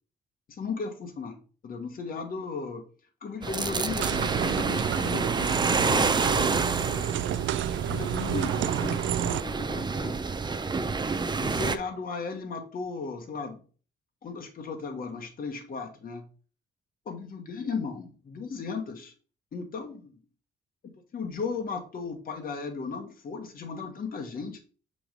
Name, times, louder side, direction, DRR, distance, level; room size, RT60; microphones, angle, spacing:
voice 1, 0.5-2.8 3.2-7.1 7.9-10.2 11.4-13.6 14.2-16.3 17.0-19.1 19.5-20.1 20.8-24.6, left 4 dB, 45° left, 3 dB, 1.3 m, -36 dB
sound 1, 3.4-11.8, right 4 dB, 20° right, 0.5 m, -28 dB
sound 2, 4.0-9.4, right 11 dB, 75° right, 0.4 m, -30 dB
6.9 x 3.2 x 5.1 m, 0.38 s
cardioid pair, 90°, 20 cm